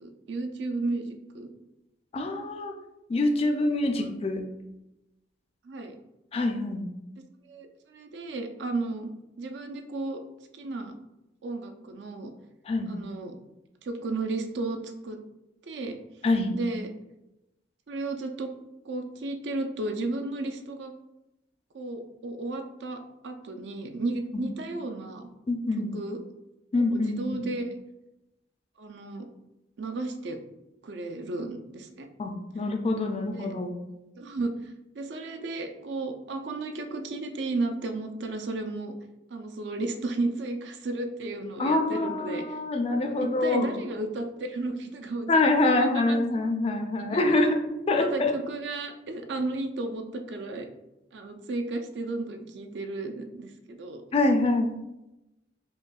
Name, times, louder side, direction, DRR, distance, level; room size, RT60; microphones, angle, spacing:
voice 1, 0.0-1.5 5.6-6.0 7.5-9.1 9.4-10.2 10.6-10.9 11.4-12.3 12.9-13.3 13.8-15.2 15.7-15.9 16.5-16.9 17.9-18.5 18.9-20.9 21.7-25.3 25.8-26.2 26.9-27.7 28.8-29.3 29.8-30.4 30.8-32.1 33.3-33.6 34.2-34.5 35.0-38.9 39.3-42.6 43.0-46.2 47.1-47.4 48.0-50.7 51.1-54.0, right 2 dB, 70° right, 6 dB, 0.4 m, -33 dB
voice 2, 2.1-2.7 3.1-4.4 6.3-6.8 12.7-13.0 16.2-16.6 24.3-24.5 25.5-25.9 26.7-27.4 32.2-33.7 41.6-43.7 45.3-47.6 47.9-48.3 54.1-54.8, left 2 dB, 35° left, 4 dB, 0.4 m, -25 dB
5.2 x 2.2 x 2.3 m, 0.94 s
head